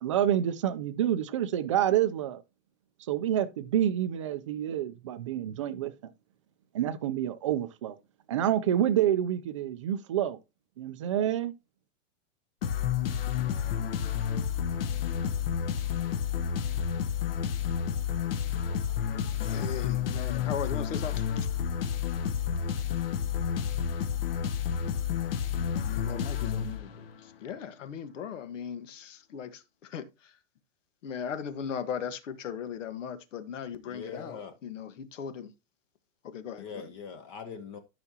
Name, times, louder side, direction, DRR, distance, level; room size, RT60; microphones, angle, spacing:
voice 1, 0.0-2.4 3.1-6.1 6.7-8.0 8.3-10.4 10.8-11.5, right 11 dB, 25° right, 0.4 m, -28 dB
sound 1, 12.6-27.2, left 8 dB, 50° left, 1.0 m, -30 dB
voice 2, 16.6-17.0 33.8-34.5 36.6-37.8, left 6 dB, 25° left, 0.7 m, -43 dB
voice 3, 19.5-21.5 25.6-30.3 31.0-35.5 36.2-36.9, left 7 dB, 80° left, 1.5 m, -38 dB
13.5 x 5.9 x 2.9 m
supercardioid pair, 175°, 37 cm